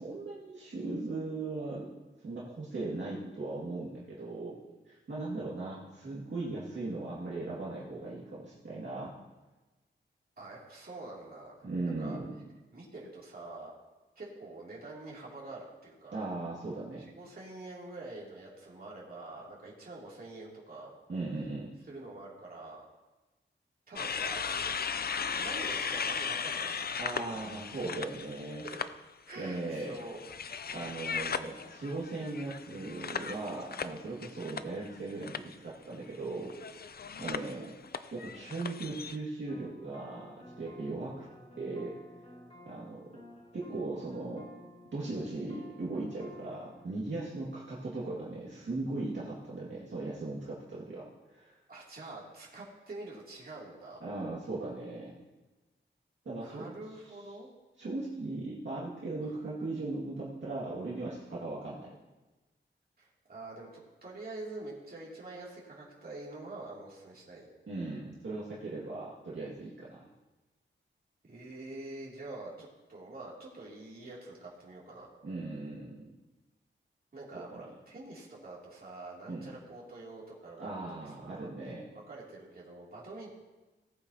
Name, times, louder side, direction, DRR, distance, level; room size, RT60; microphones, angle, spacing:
voice 1, 0.0-1.9 2.2-4.6 4.9-9.1 11.6-12.3 16.1-17.0 21.1-21.7 27.0-28.7 29.4-30.0 30.7-37.8 38.1-41.2 41.6-41.9 42.7-43.2 43.5-44.5 44.9-51.6 54.0-55.1 56.3-56.7 57.8-61.9 67.7-70.1 75.2-76.1 77.3-77.4 79.3-79.5 80.6-81.9, right 2 dB, 65° right, -7 dB, 2.2 m, -38 dB
voice 2, 10.4-12.2 12.7-13.7 14.2-16.2 17.0-20.9 21.8-22.8 23.9-25.0 25.3-26.8 27.3-27.5 27.9-28.0 28.6-28.8 29.3-30.2 51.7-54.0 56.3-57.5 59.2-59.4 63.0-63.7 64.0-67.5 71.2-75.1 77.1-83.3, right 2 dB, 50° right, -5 dB, 2.9 m, -46 dB
sound 1, 24.0-28.9 29.3-35.0 35.2-35.5 36.4-39.2, left 6 dB, 50° left, 0.5 m, -37 dB
sound 2, 39.5-46.8, left 1 dB, 30° left, 1.7 m, -53 dB
18.5 x 8.6 x 2.9 m, 1.1 s
wide cardioid pair, 125°, 20 cm